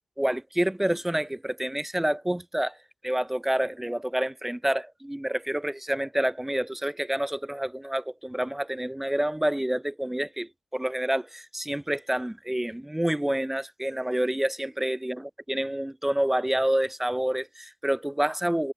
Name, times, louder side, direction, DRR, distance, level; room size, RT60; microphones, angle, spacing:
voice 1, 0.2-2.8 3.0-18.7, right 1 dB, 10° right, 5.3 m, -28 dB
supercardioid pair, 45°, 3 cm